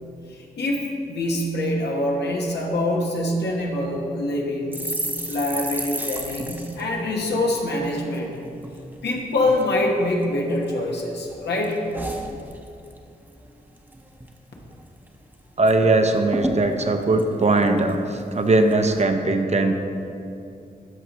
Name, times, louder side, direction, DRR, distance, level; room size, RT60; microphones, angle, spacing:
voice 1, 0.3-5.0 5.3-8.3 9.0-11.9, left 1 dB, 85° left, -1 dB, 1.1 m, -25 dB
sound 1, 4.7-8.3 8.6-8.8 9.1-9.7 10.2-11.0 11.3-13.0 13.3-13.5 13.8-14.3 14.7-14.8 15.1-15.8 16.0-16.1 16.3-18.2 18.7-19.0, right 1 dB, 10° right, 0.8 m, -33 dB
voice 2, 15.6-19.7, right 2 dB, 40° right, 6 dB, 0.7 m, -20 dB
12.5 x 5.1 x 3.0 m, 2.6 s
cardioid pair, 55°, 17 cm